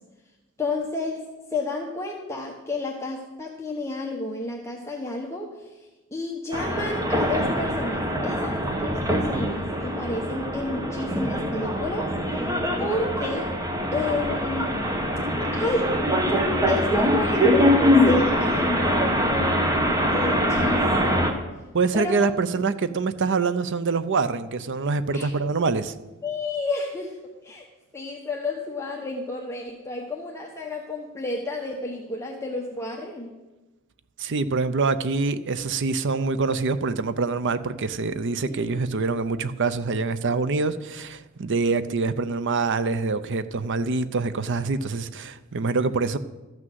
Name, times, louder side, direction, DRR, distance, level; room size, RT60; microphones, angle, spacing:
voice 1, 0.6-12.1 12.8-13.5 13.9-14.8 15.4-15.9 16.7-19.6 20.1-21.4 21.9-22.3 25.1-25.3 26.2-27.6 27.9-33.3 38.5-38.8, left 2 dB, 15° left, 1.1 m, -31 dB
sound 1, 6.5-21.3, equal, 15° right, 1.2 m, -23 dB
voice 2, 21.7-25.9 34.2-46.2, right 4 dB, 60° right, 0.7 m, -25 dB
13.5 x 6.2 x 7.6 m
head